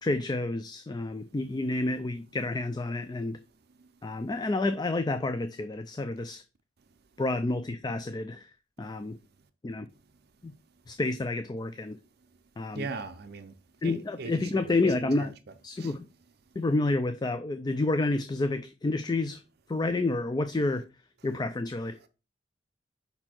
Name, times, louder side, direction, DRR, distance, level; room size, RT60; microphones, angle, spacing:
voice 1, 0.0-3.4 4.0-6.4 7.2-8.5 8.8-9.2 9.6-9.9 10.4-10.5 10.9-12.0 12.6-12.9 13.8-15.3 15.6-16.1 16.6-19.4 19.7-20.8 21.2-22.0, left 2 dB, 20° left, 0.4 m, -29 dB
voice 2, 12.7-13.6 13.8-14.7 15.2-15.3 15.8-15.9, right 4 dB, 55° right, 0.6 m, -39 dB
5.4 x 4.4 x 4.3 m
head